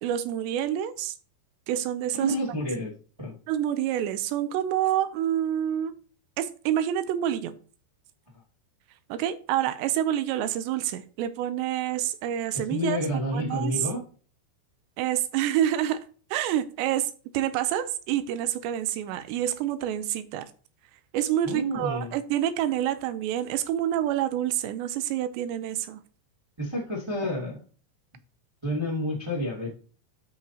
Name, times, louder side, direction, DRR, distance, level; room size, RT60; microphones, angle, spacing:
voice 1, 0.0-1.1 1.7-2.3 3.5-5.9 6.4-7.6 9.1-13.0 13.3-13.7 15.0-16.0 16.3-20.5 21.1-26.0, right 11 dB, 80° right, 2.8 m, -27 dB
voice 2, 2.1-2.9 3.2-3.3 12.5-14.0 21.4-22.1 26.6-27.6 28.6-29.8, equal, 10° right, 1.3 m, -29 dB
13.0 x 5.0 x 2.9 m
omnidirectional pair, 5.2 m